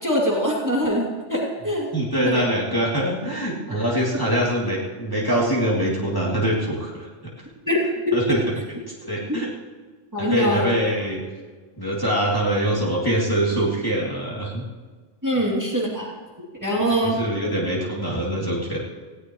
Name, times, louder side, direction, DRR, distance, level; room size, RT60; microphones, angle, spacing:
voice 1, 0.0-1.9 2.2-2.4 7.7-7.8 8.1-8.2 10.1-10.7 15.2-16.1 16.6-17.2, equal, 15° right, -4 dB, 2.7 m, -23 dB
voice 2, 1.9-7.3 8.1-8.5 8.9-9.5 10.2-11.2 11.8-14.6 16.8-18.8, right 1 dB, 15° left, -5 dB, 2.7 m, -24 dB
19.0 x 16.5 x 3.1 m, 1.4 s
omnidirectional pair, 1.3 m